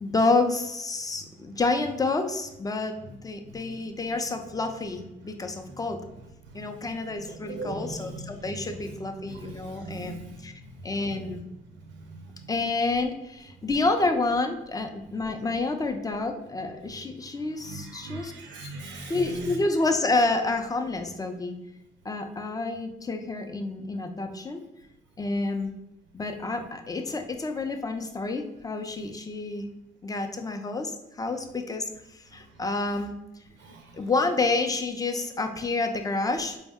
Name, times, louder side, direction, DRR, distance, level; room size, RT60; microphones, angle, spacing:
voice 1, 0.0-6.0 6.5-10.5 10.8-11.4 12.5-18.3 19.1-21.5 22.0-24.6 25.2-25.7 26.1-29.7 30.0-33.2 33.9-36.6, left 3 dB, 20° left, 6 dB, 0.4 m, -29 dB
voice 2, 7.2-8.4 8.8-9.0 9.3-10.4 11.1-11.2 12.1-12.2 17.6-19.6 33.6-33.9, right 2 dB, 85° right, 2 dB, 0.5 m, -40 dB
4.2 x 2.1 x 3.5 m, 0.92 s
cardioid pair, 90°, 20 cm